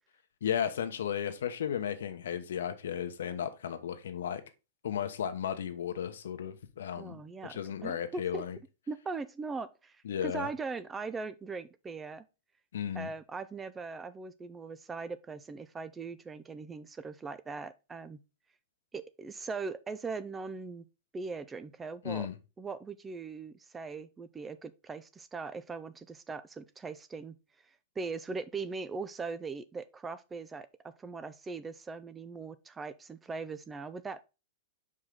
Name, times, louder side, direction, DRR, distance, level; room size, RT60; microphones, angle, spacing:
voice 1, 0.4-4.4 4.8-8.6 10.0-10.5 12.7-13.1 22.0-22.4, left 9 dB, 85° left, 1.0 m, -34 dB
voice 2, 7.0-8.4 8.9-12.2 12.9-18.2 18.9-20.8 21.1-22.3 22.6-27.4 28.0-34.2, right 4 dB, 15° right, 0.4 m, -40 dB
5.6 x 4.9 x 3.7 m
supercardioid pair, 150°, 0 cm